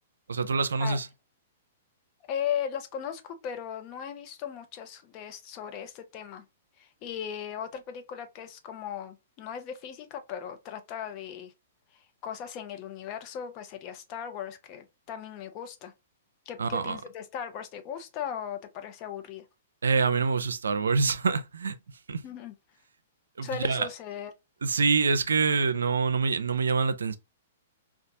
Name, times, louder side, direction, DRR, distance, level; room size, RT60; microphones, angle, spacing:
voice 1, 0.3-1.1 16.6-17.0 19.8-21.8 22.1-22.2 23.4-23.9 24.6-27.2, right 4 dB, 85° right, 0.5 m, -26 dB
voice 2, 2.3-6.4 6.8-11.5 11.9-15.9 16.5-19.4 22.2-22.5 23.4-24.3, left 8 dB, 40° left, 0.7 m, -37 dB
4.0 x 2.4 x 2.6 m
hypercardioid pair, 125°, 0 cm